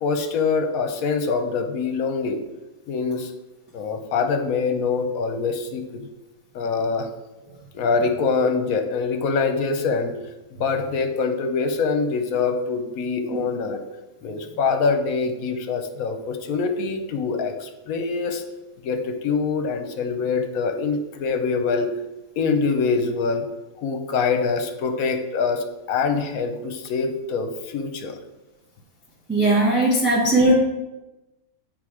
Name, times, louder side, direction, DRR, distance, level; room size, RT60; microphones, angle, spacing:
voice 1, 0.0-2.4 2.9-3.3 3.7-6.1 6.5-7.1 7.7-10.2 10.6-13.8 14.2-18.4 18.8-21.9 22.4-23.5 23.8-28.2, left 4 dB, 75° left, 7 dB, 1.2 m, -24 dB
voice 2, 29.3-30.5, right 2 dB, 10° right, -6 dB, 1.0 m, -18 dB
9.1 x 3.8 x 4.8 m, 1.0 s
omnidirectional pair, 1.5 m